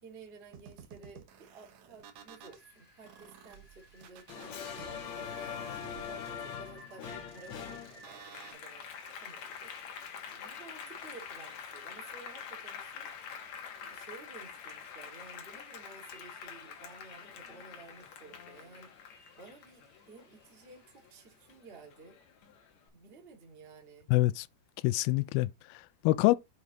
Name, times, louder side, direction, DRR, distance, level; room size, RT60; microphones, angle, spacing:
voice 1, 0.0-5.7 6.0-9.7 10.3-13.1 13.8-18.9 19.4-22.2 22.9-24.1, right 4 dB, 30° right, 1.1 m, -53 dB
sound 1, 0.5-2.6 3.0-8.5, right 8 dB, 85° right, 1.6 m, -53 dB
Rain, 2.1-21.5, left 2 dB, 25° left, 1.5 m, -59 dB
Applause, 4.3-21.1 21.5-22.7, left 7 dB, 60° left, 2.0 m, -45 dB
voice 2, 24.1-24.5 24.8-26.4, left 19 dB, 85° left, 2.2 m, -26 dB
7.1 x 4.9 x 4.0 m
omnidirectional pair, 4.9 m